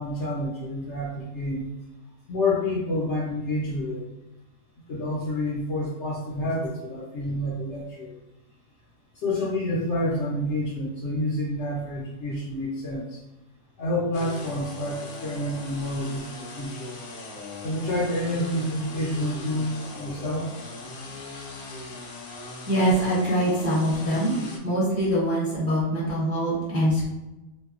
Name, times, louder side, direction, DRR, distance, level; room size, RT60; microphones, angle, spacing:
voice 1, 0.0-1.7 2.3-4.0 4.9-8.1 9.2-13.2 13.8-16.9 17.6-20.5 20.8-20.9, left 1 dB, 65° left, -4 dB, 0.8 m, -28 dB
sound 1, 14.1-24.6, left 2 dB, 90° left, 1.0 m, -40 dB
voice 2, 22.7-27.1, equal, 15° right, -8 dB, 0.6 m, -24 dB
2.8 x 2.1 x 2.4 m, 1.0 s
omnidirectional pair, 1.5 m